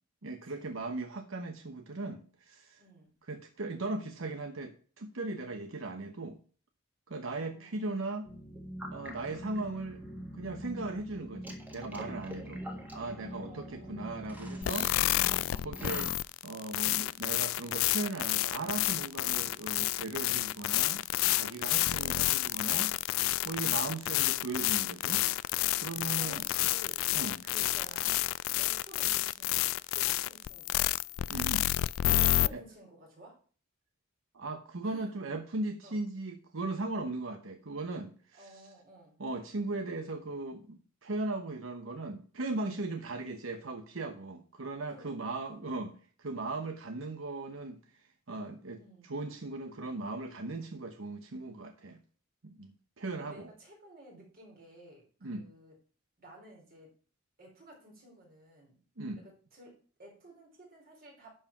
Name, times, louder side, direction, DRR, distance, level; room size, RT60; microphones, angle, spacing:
voice 1, 0.2-2.8 3.3-6.4 7.1-8.3 8.9-10.0 10.3-12.6 12.9-14.9 15.6-16.1 16.4-21.0 21.3-22.9 23.4-25.2 25.7-26.4 27.1-27.4 31.3-31.7 32.5-32.6 34.3-38.7 39.2-52.0 52.4-53.5 55.2-55.5 59.0-59.2, right 2 dB, 85° right, 6 dB, 1.0 m, -38 dB
voice 2, 2.8-3.1 7.2-7.8 12.3-12.5 13.4-14.0 14.8-15.1 21.6-22.0 26.1-27.0 27.4-28.3 28.6-30.8 32.2-33.4 34.8-35.1 35.8-36.0 38.3-39.2 42.7-43.0 44.9-45.2 45.5-45.6 48.8-49.1 53.2-55.7 56.2-56.9 57.4-58.8 59.2-61.3, right 1 dB, 50° right, -1 dB, 4.3 m, -54 dB
sound 1, 8.2-16.1, equal, 10° right, 1.6 m, -43 dB
sound 2, 14.6-32.5, left 15 dB, 85° left, 0.3 m, -30 dB
11.5 x 4.8 x 6.0 m, 0.42 s
head